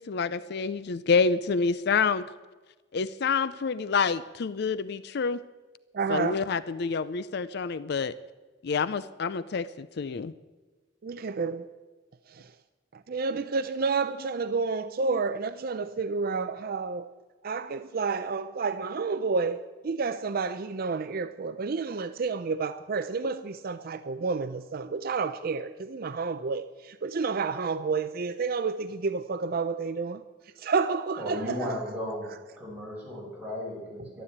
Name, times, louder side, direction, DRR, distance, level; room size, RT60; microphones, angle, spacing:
voice 1, 0.0-2.3 2.9-5.4 6.1-8.1 8.6-10.3, left 5 dB, 60° left, 16 dB, 0.5 m, -27 dB
voice 2, 5.9-6.4 11.0-11.7 12.3-12.5 12.9-17.1 17.4-31.8, right 4 dB, 55° right, 11 dB, 0.5 m, -30 dB
voice 3, 31.2-32.3 32.6-34.2, equal, 10° right, -5 dB, 6.0 m, -35 dB
12.5 x 11.0 x 8.6 m, 1.3 s
head